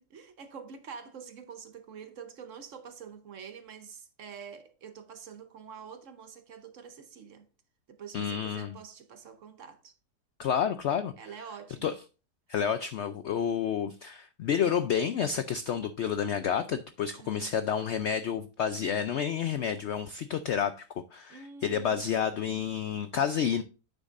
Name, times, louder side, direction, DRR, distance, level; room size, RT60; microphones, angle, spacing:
voice 1, 0.1-7.5 7.9-9.9 11.2-11.9 17.2-17.5 21.3-22.6, right 6 dB, 55° right, 1.1 m, -46 dB
voice 2, 8.1-8.8 10.4-11.1 11.8-11.9 12.5-23.6, left 8 dB, 90° left, 0.6 m, -30 dB
9.2 x 7.0 x 2.5 m
omnidirectional pair, 1.8 m